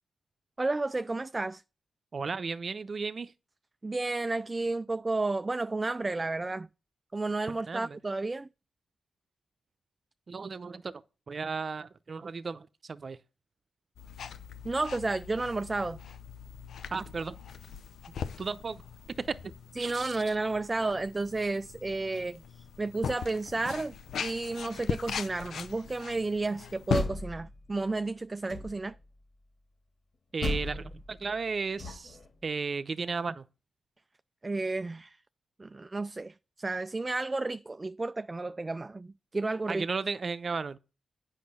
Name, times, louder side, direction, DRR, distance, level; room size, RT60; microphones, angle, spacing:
voice 1, 0.6-1.6 3.8-6.7 7.1-8.5 14.6-16.0 19.8-23.9 24.2-28.9 34.4-35.2 35.6-39.9, right 3 dB, 30° right, 0.3 m, -32 dB
voice 2, 2.1-3.3 7.5-8.0 10.3-10.9 11.3-13.2 16.9-17.3 18.4-18.8 19.2-19.5 19.8-20.4 30.3-32.2 32.4-33.4 39.7-40.8, right 4 dB, 50° right, 0.7 m, -34 dB
sound 1, 14.0-27.0, left 7 dB, 75° left, 0.6 m, -39 dB
Door, 26.7-27.9 28.5-29.0 30.4-32.3, left 2 dB, 50° left, 2.4 m, -37 dB
8.6 x 5.6 x 5.4 m
supercardioid pair, 55°, 0 cm